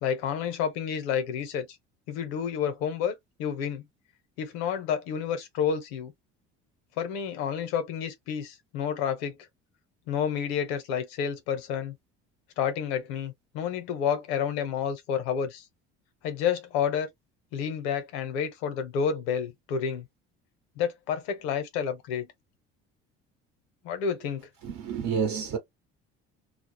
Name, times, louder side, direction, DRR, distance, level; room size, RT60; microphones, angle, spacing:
voice 1, 0.0-1.7 2.1-3.1 3.4-3.8 4.4-6.1 7.0-9.4 10.1-11.9 12.6-15.6 16.2-17.1 17.5-20.0 20.8-22.3 23.8-24.4, left 7 dB, 80° left, 0.8 m, -30 dB
voice 2, 24.6-25.6, right 6 dB, 60° right, 0.8 m, -29 dB
2.3 x 2.0 x 3.1 m
hypercardioid pair, 70°, 31 cm